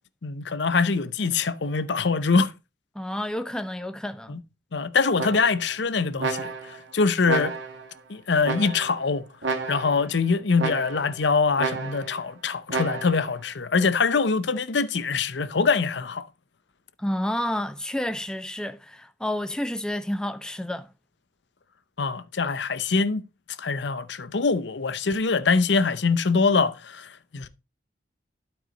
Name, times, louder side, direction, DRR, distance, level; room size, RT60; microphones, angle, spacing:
voice 1, 0.2-2.5 4.3-4.4 4.7-7.6 8.1-9.2 9.7-16.3 22.0-23.2 23.6-27.5, left 4 dB, 75° left, 0.7 m, -24 dB
voice 2, 3.0-4.4 17.0-20.9, left 1 dB, 5° left, 0.4 m, -30 dB
sound 1, 5.2-5.7 6.2-6.8 7.3-7.9 8.4-9.0 9.4-10.1 10.6-11.2 11.6-12.2 12.7-13.3, right 4 dB, 90° right, 2.1 m, -31 dB
12.0 x 4.8 x 3.9 m
head